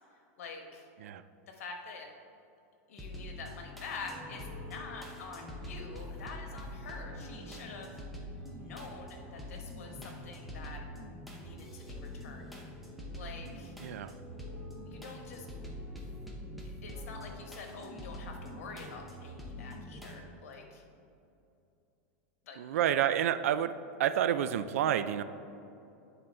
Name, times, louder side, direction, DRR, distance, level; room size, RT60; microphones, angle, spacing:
voice 1, 0.4-0.9 1.5-2.1 2.9-8.0 8.6-10.8 11.3-12.5 13.1-13.7 14.9-15.5 16.8-20.8 22.4-22.8, left 4 dB, 80° left, 3 dB, 1.2 m, -46 dB
sound 1, 3.0-20.2, left 1 dB, ahead, 0.7 m, -45 dB
sound 2, 3.8-10.6, equal, 20° right, 1.7 m, -54 dB
voice 2, 13.8-14.1 22.6-25.2, right 10 dB, 85° right, 12 dB, 0.4 m, -29 dB
9.6 x 3.9 x 4.4 m, 2.7 s
supercardioid pair, 165°, 8 cm